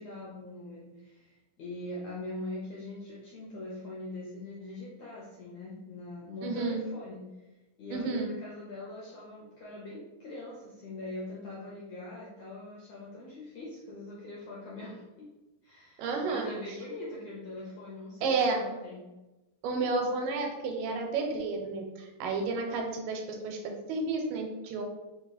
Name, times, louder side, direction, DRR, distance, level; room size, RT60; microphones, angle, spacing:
voice 1, 0.0-15.3 15.6-19.1, left 2 dB, 75° left, -5 dB, 1.5 m, -42 dB
voice 2, 6.4-6.8 7.9-8.3 16.0-16.5 18.2-18.6 19.6-24.8, right 3 dB, 85° right, 2 dB, 2.3 m, -31 dB
5.2 x 2.3 x 4.0 m, 1.1 s
omnidirectional pair, 3.9 m